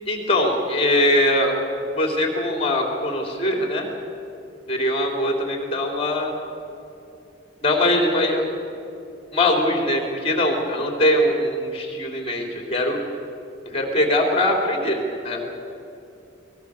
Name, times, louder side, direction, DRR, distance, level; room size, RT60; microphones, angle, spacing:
voice 1, 0.1-1.5 1.9-3.9 4.7-6.3 7.6-8.5 9.3-13.0 13.7-15.4, left 1 dB, 30° left, 2 dB, 3.4 m, -22 dB
23.5 x 20.0 x 6.6 m, 2.7 s
head